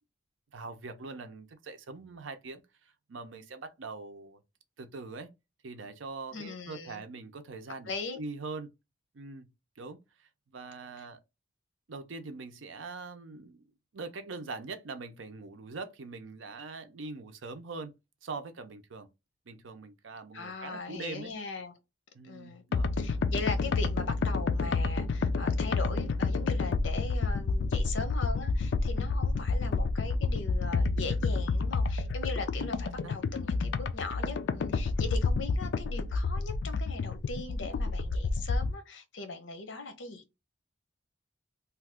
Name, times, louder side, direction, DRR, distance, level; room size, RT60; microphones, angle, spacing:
voice 1, 0.5-4.4 4.8-5.3 5.6-8.7 9.1-9.5 9.8-11.2 11.9-13.6 13.9-17.9 18.2-19.1 19.5-21.3 22.1-22.9 32.6-32.7 33.0-33.2, right 3 dB, 90° right, 0.6 m, -42 dB
voice 2, 6.3-7.0 7.9-8.2 20.3-21.7 22.2-22.6 23.0-40.2, left 3 dB, 80° left, 0.7 m, -39 dB
sound 1, 22.7-38.7, left 3 dB, 65° left, 0.3 m, -29 dB
2.8 x 2.3 x 3.4 m
head